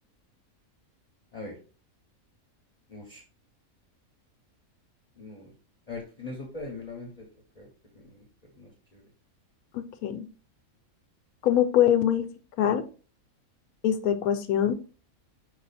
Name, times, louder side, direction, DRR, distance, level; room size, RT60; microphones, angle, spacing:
voice 1, 2.9-3.2 5.2-5.5 5.9-7.3 7.5-7.7 7.9-8.2 8.5-9.0, left 3 dB, 35° left, 0 dB, 0.8 m, -41 dB
voice 2, 9.7-10.3 11.4-12.2 12.6-12.8 13.8-14.7, left 10 dB, 85° left, 9 dB, 1.1 m, -23 dB
5.4 x 2.4 x 4.0 m, 0.37 s
omnidirectional pair, 1.5 m